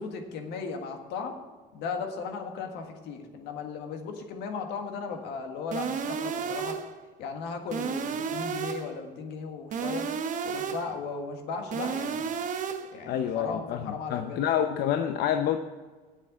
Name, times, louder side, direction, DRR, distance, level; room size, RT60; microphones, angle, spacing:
voice 1, 0.0-1.3 1.7-6.8 7.2-10.0 10.4-12.3 12.9-14.4, left 5 dB, 90° left, 4 dB, 1.6 m, -36 dB
sound 1, 5.7-7.0 7.7-9.0 9.7-11.0 11.7-13.0, right 6 dB, 50° right, 0.9 m, -32 dB
voice 2, 13.1-15.6, left 9 dB, 75° left, 7 dB, 0.7 m, -28 dB
7.9 x 7.6 x 8.2 m, 1.4 s
cardioid pair, 110°, 17 cm